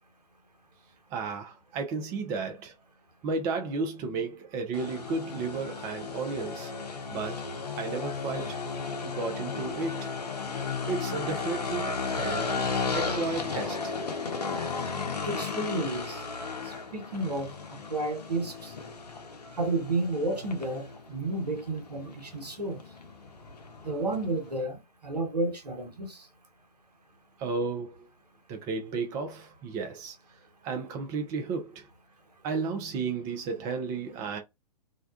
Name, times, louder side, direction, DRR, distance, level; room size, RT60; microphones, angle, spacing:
voice 1, 1.1-2.7 3.2-6.7 7.1-7.5 7.7-8.6 9.0-10.2 10.9-12.5 12.9-14.0 27.4-28.1 28.5-30.2 30.6-31.9 32.4-34.4, right 4 dB, 15° right, 0.4 m, -33 dB
sound 1, 4.7-24.6, left 4 dB, 70° left, 0.7 m, -35 dB
voice 2, 15.3-16.2 16.7-18.7 19.6-22.8 23.8-26.2, right 2 dB, 75° right, 0.9 m, -32 dB
2.4 x 2.1 x 2.4 m
figure-of-eight pair, 115°, 20 cm